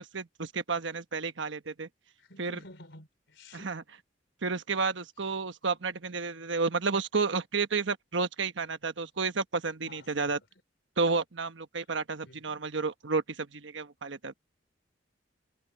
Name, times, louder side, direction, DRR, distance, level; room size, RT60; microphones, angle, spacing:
voice 1, 0.0-1.9 2.4-2.6 3.5-3.8 4.4-10.4 11.0-14.3, right 4 dB, 80° right, 1.2 m, -31 dB
voice 2, 2.2-3.7 9.9-10.5 12.2-12.6, left 2 dB, 75° left, 4.8 m, -52 dB
head